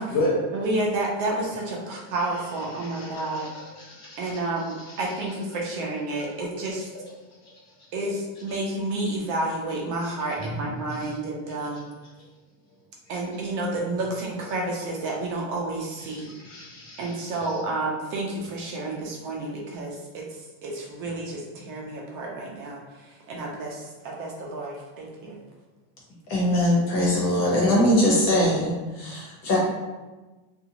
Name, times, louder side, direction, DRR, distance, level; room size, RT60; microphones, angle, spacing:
voice 1, 0.5-3.5 4.2-6.9 7.9-11.9 13.1-16.3 17.0-25.4, right 2 dB, 45° right, -2 dB, 0.5 m, -30 dB
voice 2, 2.8-4.3 16.2-17.1, left 2 dB, 35° left, -7 dB, 1.0 m, -32 dB
voice 3, 26.3-29.6, left 1 dB, 90° left, -4 dB, 1.2 m, -21 dB
2.5 x 2.4 x 2.8 m, 1.2 s
cardioid pair, 160°, 47 cm